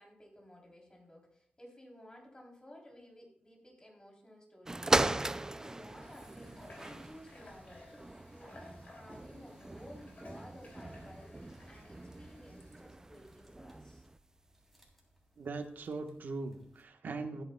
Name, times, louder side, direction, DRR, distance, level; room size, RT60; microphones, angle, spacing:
voice 1, 0.0-14.0, left 1 dB, 25° left, -1 dB, 3.3 m, -55 dB
sound 1, 4.6-14.2 14.9-15.0, right 2 dB, 20° right, 0.3 m, -38 dB
sound 2, 5.3-16.8, equal, ahead, 3.2 m, -63 dB
Water / Water tap faucet, 5.4-12.9, left 2 dB, 50° left, 2.7 m, -58 dB
voice 2, 15.4-17.4, right 3 dB, 75° right, 5 dB, 1.2 m, -40 dB
15.5 x 8.9 x 2.3 m, 0.66 s
wide cardioid pair, 85°, 3 cm